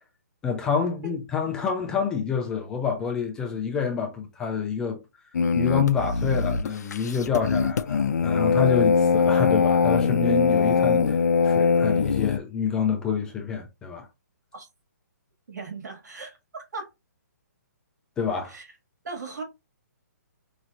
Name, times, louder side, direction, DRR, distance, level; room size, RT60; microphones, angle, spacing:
voice 1, 0.4-5.0 5.5-14.1 18.2-18.6, left 6 dB, 5° left, 0.4 m, -27 dB
sound 1, 5.3-12.4, left 5 dB, 70° left, 0.5 m, -22 dB
voice 2, 15.5-16.9 18.5-18.7 19.0-19.4, right 4 dB, 75° right, 2.0 m, -38 dB
5.3 x 3.0 x 2.5 m
hypercardioid pair, 170°, 9 cm